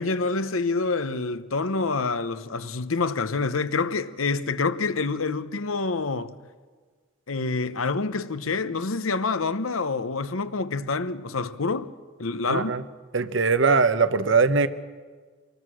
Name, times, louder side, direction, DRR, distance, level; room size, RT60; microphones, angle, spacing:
voice 1, 0.0-6.4 7.3-11.9 12.2-12.8, left 4 dB, 85° left, 0.9 m, -27 dB
voice 2, 12.5-12.8 13.1-14.7, right 4 dB, 65° right, 0.9 m, -21 dB
25.5 x 19.5 x 6.3 m
head